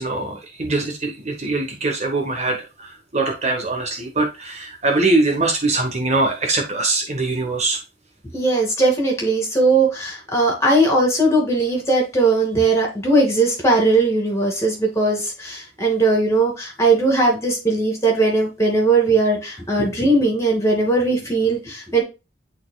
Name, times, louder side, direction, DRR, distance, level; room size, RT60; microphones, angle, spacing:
voice 1, 0.0-7.8, right 2 dB, 40° right, 2 dB, 1.2 m, -22 dB
voice 2, 8.3-22.0, right 2 dB, 15° left, 0 dB, 2.5 m, -19 dB
10.5 x 4.2 x 2.3 m, 0.27 s
head